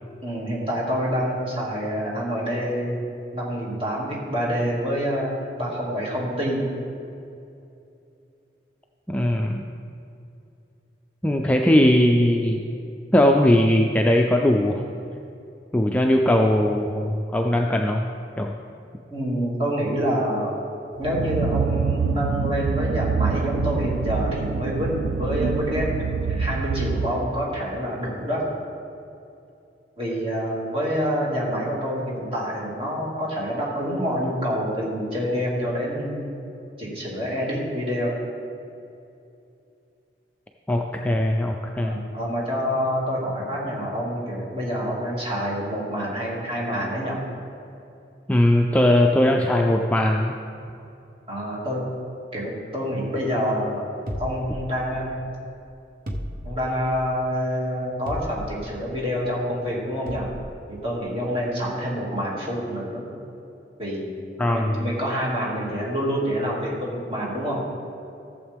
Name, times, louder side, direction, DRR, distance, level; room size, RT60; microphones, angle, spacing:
voice 1, 0.2-3.1 3.3-6.7 19.1-20.5 21.0-25.9 26.3-28.4 30.0-36.3 36.8-38.2 41.8-47.2 51.3-51.8 52.3-53.8 54.2-55.3 56.4-60.3 60.7-63.1 63.8-67.6, equal, 30° right, -5 dB, 2.2 m, -27 dB
voice 2, 9.1-9.6 11.2-12.6 13.1-14.8 15.7-18.1 18.4-18.5 40.7-42.0 48.3-50.4 64.4-64.8, left 1 dB, 10° left, 1 dB, 0.3 m, -19 dB
sound 1, 21.0-27.5, right 5 dB, 75° right, 0.3 m, -26 dB
sound 2, 54.1-55.2 56.1-57.0 58.1-58.8 60.1-60.5, equal, 50° right, 1.0 m, -34 dB
14.0 x 7.3 x 3.5 m, 2.7 s
head